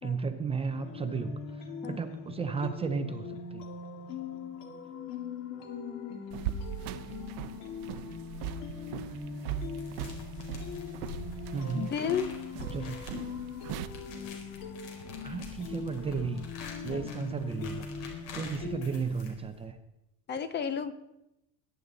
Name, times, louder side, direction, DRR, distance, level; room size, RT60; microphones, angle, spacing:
voice 1, 0.0-3.6 11.5-11.9 12.7-13.2 15.2-16.5 16.8-19.8, right 5 dB, 15° right, 8 dB, 0.6 m, -34 dB
sound 1, 0.8-19.0, left 5 dB, 50° left, 2.3 m, -41 dB
voice 2, 5.5-6.3 11.7-12.3 16.9-17.1 20.3-20.9, left 7 dB, 25° left, 12 dB, 0.7 m, -34 dB
sound 2, 6.3-13.9, right 10 dB, 75° right, 1.0 m, -40 dB
sound 3, 9.5-19.7, left 2 dB, 70° left, 4.4 m, -46 dB
21.5 x 10.5 x 4.1 m, 0.89 s
cardioid pair, 160°, 41 cm